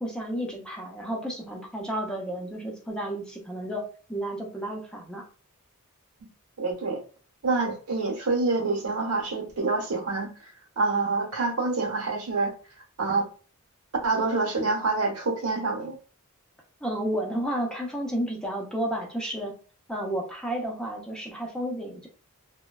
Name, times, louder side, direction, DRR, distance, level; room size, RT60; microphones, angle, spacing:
voice 1, 0.0-3.8 4.1-5.2 16.8-19.5 19.9-22.1, right 1 dB, 5° left, -1 dB, 0.5 m, -32 dB
voice 2, 6.6-7.0 7.4-12.5 13.0-13.2 14.0-16.0, right 3 dB, 80° right, 0 dB, 0.9 m, -27 dB
3.0 x 2.2 x 2.3 m, 0.39 s
head